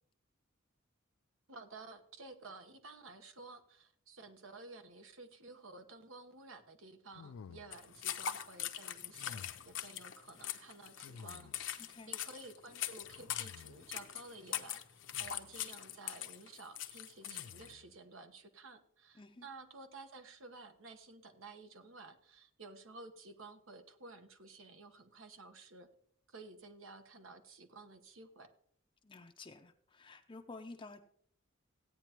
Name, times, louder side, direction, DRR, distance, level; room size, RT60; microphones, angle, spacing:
voice 1, 1.5-14.8 15.2-25.9 26.3-28.5, right 3 dB, 75° right, 7 dB, 1.2 m, -53 dB
sound 1, 7.1-8.1 9.2-9.9 11.0-11.8 13.0-14.0 15.1-15.7 17.2-18.0, left 5 dB, 85° left, 0.4 m, -54 dB
sound 2, 7.7-17.7, left 10 dB, 65° left, 0.7 m, -42 dB
voice 2, 19.1-19.5 29.0-31.0, left 3 dB, 25° left, 4 dB, 0.5 m, -51 dB
16.0 x 9.1 x 3.0 m, 0.65 s
head